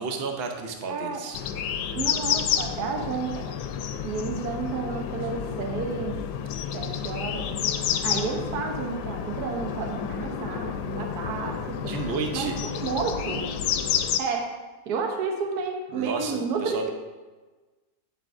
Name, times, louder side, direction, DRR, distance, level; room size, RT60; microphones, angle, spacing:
voice 1, 0.0-1.4 11.9-12.6 15.9-16.9, right 4 dB, 50° right, 4 dB, 0.8 m, -31 dB
voice 2, 0.9-1.2 1.9-3.5 4.0-6.2 6.7-7.5 8.0-11.9 12.3-13.5 14.2-14.5 14.9-16.9, right 5 dB, 70° right, 2 dB, 1.5 m, -31 dB
sound 1, 1.3-14.2, left 8 dB, 80° left, 1.1 m, -30 dB
9.2 x 7.7 x 2.6 m, 1.3 s
omnidirectional pair, 1.8 m